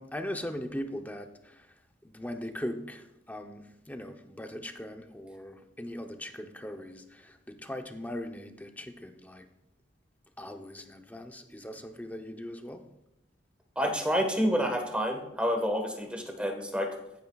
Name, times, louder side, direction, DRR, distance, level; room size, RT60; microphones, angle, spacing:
voice 1, 0.0-1.7 2.0-9.5 10.4-12.8, left 1 dB, 10° left, 5 dB, 0.7 m, -40 dB
voice 2, 13.7-16.9, equal, 5° right, 3 dB, 1.4 m, -28 dB
14.5 x 9.0 x 2.4 m, 0.85 s
head